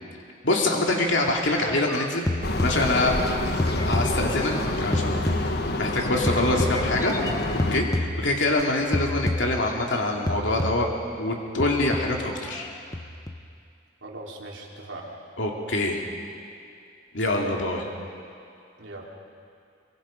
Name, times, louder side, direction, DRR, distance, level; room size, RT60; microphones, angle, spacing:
voice 1, 0.4-2.3 2.6-3.1 3.9-5.5 5.8-7.1 7.5-10.9 11.2-12.6 15.4-16.0 17.1-17.8, left 2 dB, 70° left, 0 dB, 2.5 m, -25 dB
sound 1, 1.7-3.3 3.6-5.9 6.3-8.6 8.9-10.0 10.3-11.1 11.6-12.7 12.9-13.4, left 1 dB, 20° left, 0.8 m, -29 dB
sound 2, 2.4-7.8, left 2 dB, 55° left, 1.3 m, -28 dB
voice 2, 14.0-15.1 18.8-19.1, right 2 dB, 75° right, -2 dB, 3.3 m, -39 dB
24.0 x 24.0 x 5.2 m, 2.4 s
head